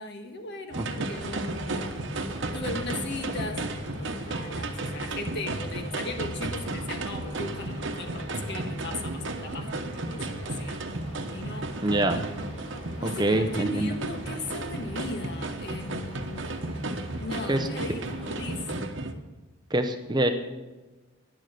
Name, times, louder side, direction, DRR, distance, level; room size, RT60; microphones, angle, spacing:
voice 1, 0.0-1.9 2.2-3.7 4.0-10.9 11.3-11.8 13.0-16.5 17.2-18.9, left 2 dB, 50° left, 5 dB, 1.6 m, -38 dB
sound 1, 0.7-19.1, right 2 dB, 60° right, 1.1 m, -34 dB
sound 2, 1.1-18.6, equal, 30° left, 2.7 m, -47 dB
voice 2, 11.8-12.3 13.0-13.9 17.5-17.7 19.7-20.3, right 1 dB, 20° right, 7 dB, 0.7 m, -25 dB
12.0 x 10.5 x 6.7 m, 1.2 s
head